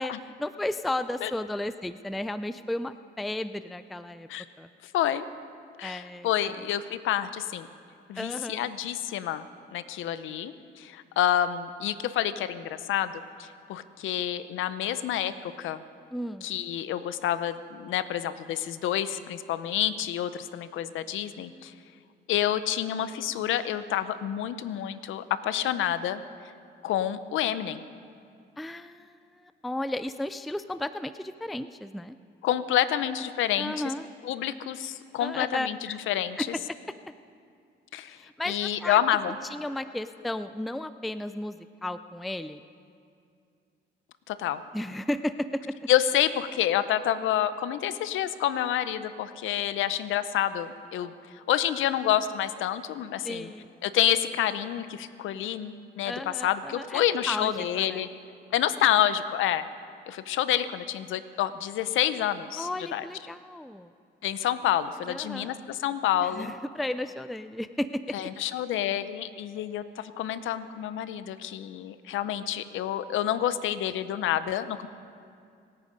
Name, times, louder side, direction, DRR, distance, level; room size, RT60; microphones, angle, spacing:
voice 1, 0.0-4.3 4.6-4.7 5.8-6.6 8.2-8.7 16.1-16.5 28.6-32.2 33.6-34.1 35.2-36.0 36.4-36.5 38.2-39.0 39.5-41.6 41.8-42.6 44.7-45.7 53.2-53.7 56.0-58.1 62.6-63.9 65.1-65.5 66.2-68.2, left 1 dB, ahead, 12 dB, 0.4 m, -34 dB
voice 2, 4.9-5.2 5.8-7.7 8.1-15.8 16.4-21.7 22.3-26.2 26.8-27.8 32.4-33.7 34.2-35.8 36.1-36.5 37.9-38.2 38.5-39.4 44.3-44.6 45.9-51.1 51.5-53.5 53.8-58.1 58.5-59.7 60.1-63.0 64.2-66.5 68.1-74.9, left 11 dB, 80° left, 13 dB, 0.7 m, -28 dB
26.5 x 9.2 x 5.2 m, 2.4 s
cardioid pair, 90°, 20 cm